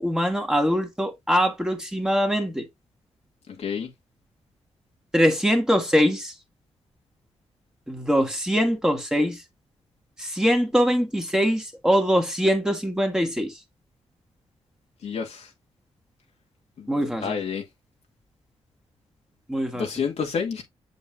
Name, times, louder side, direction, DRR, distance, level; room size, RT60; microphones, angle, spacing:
voice 1, 0.0-2.7 5.1-6.3 7.9-9.4 10.2-13.6 16.9-17.4 19.5-19.9, equal, 5° right, 2.1 m, -23 dB
voice 2, 3.6-3.9 15.0-15.5 16.8-16.9 17.2-17.6 19.7-20.6, left 6 dB, 75° left, 2.1 m, -29 dB
7.1 x 5.4 x 2.5 m
cardioid pair, 65°, 11 cm